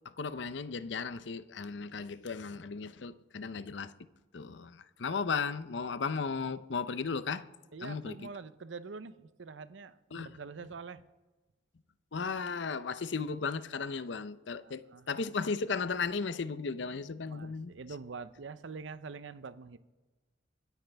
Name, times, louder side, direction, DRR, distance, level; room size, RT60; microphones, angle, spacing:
voice 1, 0.2-3.9 4.3-7.4 7.8-8.2 10.1-10.3 12.1-17.7, left 5 dB, 70° left, 0.6 m, -35 dB
voice 2, 7.7-11.0 14.6-15.1 17.3-19.8, right 4 dB, 75° right, 0.6 m, -45 dB
25.0 x 9.2 x 3.4 m
head